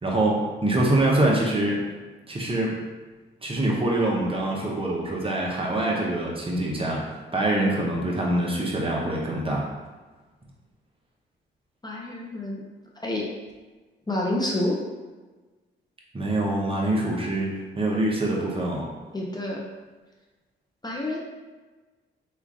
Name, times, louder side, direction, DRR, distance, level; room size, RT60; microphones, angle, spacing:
voice 1, 0.0-1.8 2.3-2.7 3.4-9.7 16.1-18.9, right 1 dB, 25° right, -3 dB, 0.8 m, -25 dB
voice 2, 11.8-12.6 13.0-13.2 14.1-14.8 19.1-19.6 20.8-21.2, left 1 dB, 20° left, -3 dB, 0.7 m, -28 dB
3.1 x 2.4 x 3.5 m, 1.3 s
cardioid pair, 70°, 20 cm